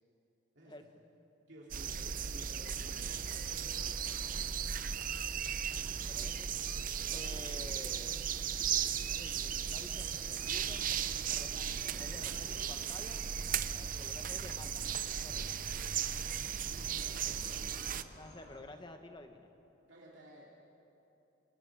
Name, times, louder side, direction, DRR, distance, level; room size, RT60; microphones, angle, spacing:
voice 1, 1.5-5.1 7.3-7.8 12.2-12.6 14.1-14.4 16.6-18.4 19.9-20.5, right 1 dB, 60° right, -5 dB, 3.1 m, -56 dB
sound 1, 1.7-18.0, right 8 dB, 40° right, 0.6 m, -36 dB
voice 2, 5.7-6.5 7.1-8.2 9.0-10.8 11.3-13.2 13.6-15.8 18.1-19.5, left 1 dB, 25° left, 6 dB, 1.3 m, -51 dB
sound 2, 10.4-18.6, left 1 dB, 55° left, 3.2 m, -57 dB
27.5 x 26.0 x 4.9 m, 2.9 s
head